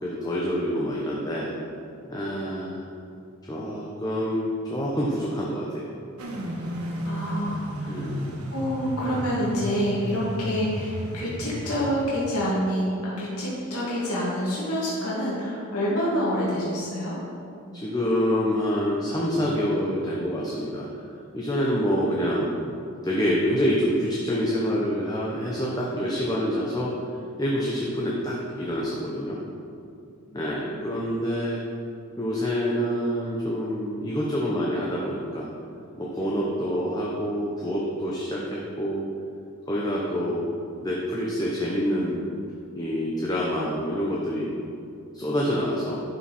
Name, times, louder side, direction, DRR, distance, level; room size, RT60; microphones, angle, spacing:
voice 1, 0.0-1.5 2.1-2.9 3.4-5.9 7.9-8.2 17.7-22.5 23.0-26.9 27.4-29.4 30.3-31.6 32.2-35.5 36.0-39.0 39.7-40.5 40.8-42.3 42.8-44.5 45.1-46.0, equal, 15° left, -4 dB, 0.8 m, -27 dB
sound 1, 6.2-12.2, equal, 85° right, 1.3 m, -33 dB
voice 2, 7.0-8.0 8.5-17.2 30.2-30.4, equal, 90° left, -7 dB, 2.4 m, -27 dB
11.5 x 6.0 x 4.3 m, 2.5 s
head